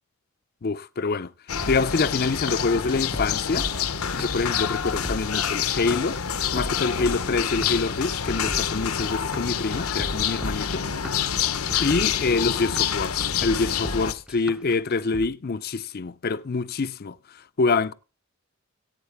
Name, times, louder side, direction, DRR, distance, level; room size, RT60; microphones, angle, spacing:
voice 1, 0.6-1.3 1.7-3.7 4.1-6.2 6.5-10.9 11.8-17.2 17.6-17.9, left 4 dB, 45° left, 0.5 m, -26 dB
sound 1, 1.5-14.1, left 8 dB, 80° left, 1.0 m, -27 dB
sound 2, 1.6-15.3, equal, 5° right, 0.5 m, -37 dB
18.5 x 8.8 x 3.5 m
head